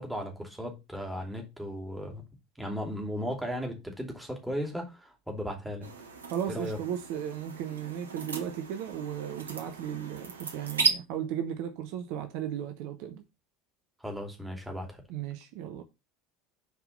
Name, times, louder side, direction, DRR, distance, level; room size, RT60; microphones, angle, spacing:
voice 1, 0.0-2.2 2.6-5.9 6.5-6.8 14.0-15.0, equal, 5° right, 2.8 m, -36 dB
sound 1, 5.8-10.9, right 5 dB, 80° right, 1.1 m, -35 dB
voice 2, 6.3-13.2 15.1-15.8, right 9 dB, 55° right, 0.9 m, -35 dB
7.0 x 4.7 x 5.4 m
figure-of-eight pair, 70°, 0 cm